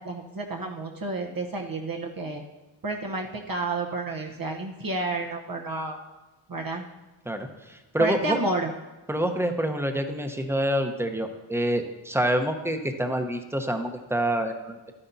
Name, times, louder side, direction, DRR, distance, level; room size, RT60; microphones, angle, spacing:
voice 1, 0.0-2.4 2.8-6.0 6.5-6.8 8.0-8.7, right 2 dB, 45° right, 1 dB, 0.9 m, -30 dB
voice 2, 7.3-8.4 9.1-14.9, right 1 dB, 5° right, 5 dB, 0.9 m, -27 dB
11.5 x 9.9 x 2.7 m, 1.1 s
cardioid pair, 55°, 48 cm